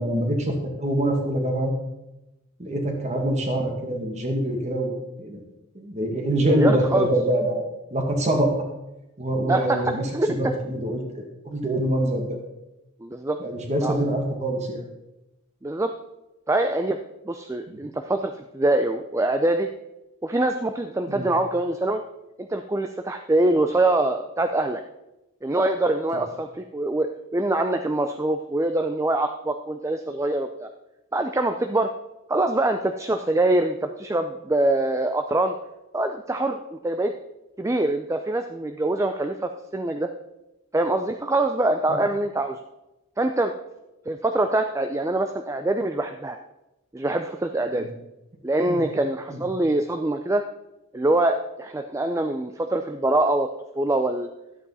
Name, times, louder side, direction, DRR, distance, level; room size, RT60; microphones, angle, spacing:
voice 1, 0.0-1.7 2.6-5.4 5.8-7.6 7.9-8.5 9.2-12.4 13.4-14.8 17.7-17.8 21.1-21.3 41.9-42.0 47.7-47.9 48.7-48.8 49.3-49.5, right 1 dB, 30° right, 2 dB, 1.8 m, -25 dB
voice 2, 6.5-7.1 9.5-9.8 10.1-10.3 13.0-13.4 13.8-13.9 15.6-15.9 16.5-17.0 17.3-19.7 20.2-22.0 22.5-24.8 25.4-30.7 31.1-31.9 32.3-35.5 35.9-37.1 37.6-40.1 40.7-42.6 43.2-43.5 44.1-46.4 46.9-47.9 48.4-50.4 50.9-53.5 53.8-54.3, right 2 dB, 15° right, 6 dB, 0.4 m, -24 dB
12.0 x 8.3 x 4.1 m, 0.96 s
head